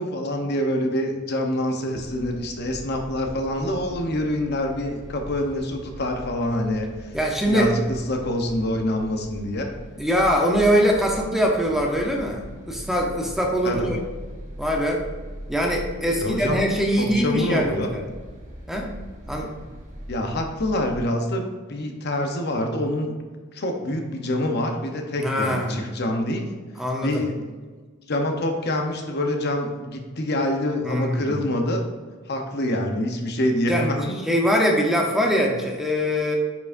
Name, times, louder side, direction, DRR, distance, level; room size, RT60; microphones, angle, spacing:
voice 1, 0.0-7.1 7.5-9.7 13.6-13.9 16.2-16.6 17.0-17.9 20.1-21.4 21.7-23.1 23.5-26.5 27.0-27.5 28.1-31.9 32.3-34.2, left 1 dB, 50° left, 3 dB, 0.9 m, -26 dB
sound 1, 1.9-21.0, equal, 35° right, 1.2 m, -40 dB
voice 2, 7.1-7.7 10.0-14.0 14.6-15.0 15.5-18.0 18.7-18.9 19.3-19.5 25.2-25.8 26.8-27.2 30.8-31.4 33.7-33.9 34.3-36.3, equal, ahead, 0 dB, 0.8 m, -22 dB
9.5 x 4.8 x 2.6 m, 1.4 s
head